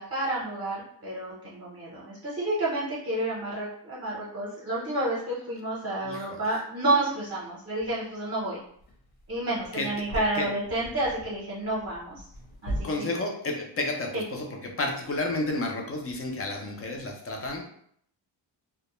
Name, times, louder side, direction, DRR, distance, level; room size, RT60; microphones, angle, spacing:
voice 1, 0.0-8.6 9.3-12.2 12.6-13.0 14.1-14.2, right 2 dB, 30° right, -6 dB, 0.7 m, -30 dB
voice 2, 6.0-6.4 9.7-9.9 10.3-10.5 12.8-17.6, left 2 dB, 35° left, 2 dB, 0.4 m, -31 dB
sound 1, 7.8-7.9 8.7-12.8, right 1 dB, 55° left, 0.9 m, -39 dB
2.2 x 2.0 x 2.9 m, 0.65 s
wide cardioid pair, 140°, 45 cm